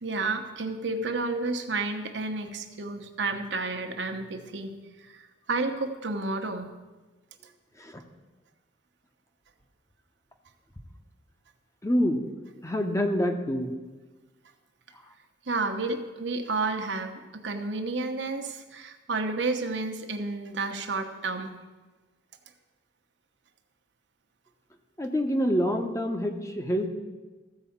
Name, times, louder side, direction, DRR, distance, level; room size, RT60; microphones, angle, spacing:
voice 1, 0.0-4.7 5.0-6.7 15.5-21.6, right 3 dB, 80° right, 5 dB, 1.0 m, -31 dB
voice 2, 11.8-12.2 12.6-13.7 25.0-26.9, equal, 15° left, 5 dB, 0.9 m, -26 dB
14.5 x 4.8 x 7.2 m, 1.2 s
head